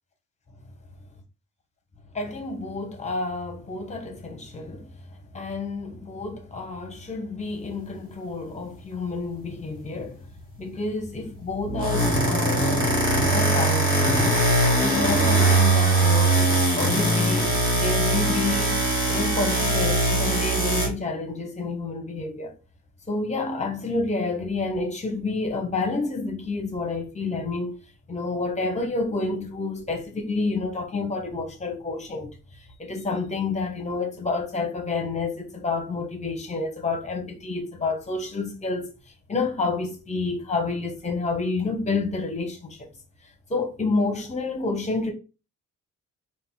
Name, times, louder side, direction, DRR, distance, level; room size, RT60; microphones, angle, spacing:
voice 1, 2.1-4.9 5.3-10.2 10.6-13.0 13.2-13.9 14.7-18.8 19.1-22.5 23.1-27.8 28.1-32.3 32.8-38.9 39.3-42.8 43.5-45.1, left 3 dB, 20° left, 0.9 m, -29 dB
sound 1, 11.6-20.9, right 2 dB, 15° right, 1.7 m, -21 dB
3.7 x 2.6 x 3.9 m
wide cardioid pair, 160°, 33 cm